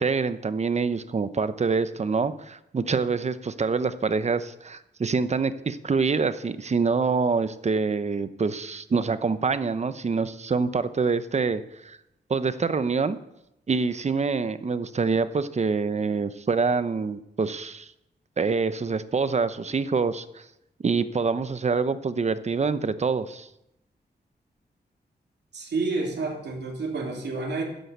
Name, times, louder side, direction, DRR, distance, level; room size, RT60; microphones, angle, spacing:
voice 1, 0.0-12.0 12.3-13.2 13.7-17.9 18.4-20.4 20.8-23.5, right 4 dB, 40° right, 13 dB, 0.8 m, -26 dB
voice 2, 25.5-27.6, right 3 dB, 75° right, -1 dB, 3.1 m, -29 dB
12.5 x 10.5 x 8.1 m, 0.85 s
wide cardioid pair, 140°, 18 cm